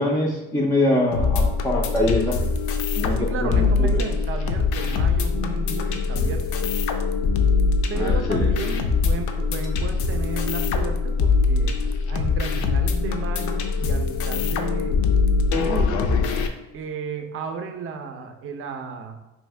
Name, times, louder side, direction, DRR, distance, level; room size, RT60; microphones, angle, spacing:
voice 1, 0.0-2.4 3.0-4.0 7.9-8.5, left 1 dB, 10° left, -2 dB, 0.4 m, -24 dB
sound 1, 1.1-16.5, left 4 dB, 80° left, 0.4 m, -22 dB
voice 2, 3.2-6.6 7.9-11.8 12.1-15.0 15.5-16.2 16.7-19.2, right 5 dB, 45° right, 6 dB, 0.5 m, -33 dB
2.7 x 2.6 x 3.2 m, 1.0 s
cardioid pair, 90°, 30 cm